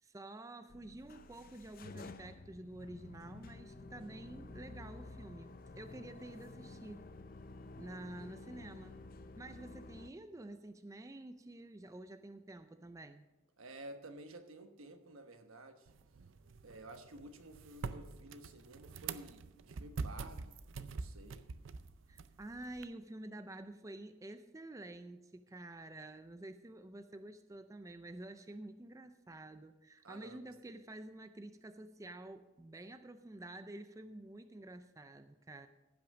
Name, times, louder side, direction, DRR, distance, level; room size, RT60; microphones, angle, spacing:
voice 1, 0.0-7.0 7.8-9.0 9.4-13.3 22.1-35.7, right 1 dB, 15° right, 10 dB, 0.4 m, -49 dB
sound 1, 0.7-10.1, left 3 dB, 45° left, 0.5 m, -51 dB
voice 2, 13.6-15.9 16.6-20.6 20.9-21.5 30.0-30.8, right 1 dB, 85° right, 7 dB, 1.2 m, -52 dB
sound 2, 15.9-22.9, right 4 dB, 65° right, 0.5 m, -46 dB
15.0 x 6.0 x 6.2 m, 1.0 s
head